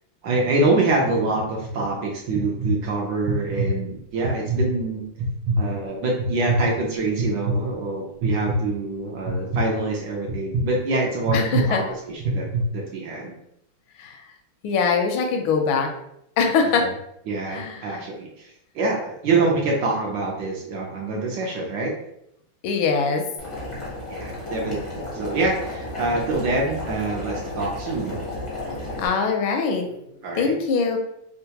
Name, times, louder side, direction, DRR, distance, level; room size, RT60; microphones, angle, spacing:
voice 1, 0.2-5.1 5.6-11.8 12.3-12.5 12.7-13.3 16.7-16.9 17.3-21.9 24.1-28.2 30.2-30.5, right 3 dB, 70° right, -1 dB, 1.2 m, -25 dB
sound 1, 1.3-1.7 2.3-2.7 3.2-3.7 4.2-4.6 5.2-5.6 6.2-6.6 7.2-7.6 8.2-8.6 9.3-9.6 10.3-10.6 11.3-11.6 12.2-12.6, right 3 dB, 90° right, 1.6 m, -24 dB
voice 2, 11.3-11.8 14.0-14.2 14.6-15.9 16.4-16.9 17.5-18.0 22.6-23.3 29.0-31.0, left 5 dB, 80° left, 3 dB, 1.4 m, -23 dB
Boiling, 23.4-29.1, left 1 dB, 40° left, 0.4 m, -33 dB
3.7 x 2.2 x 2.8 m, 0.77 s
omnidirectional pair, 2.3 m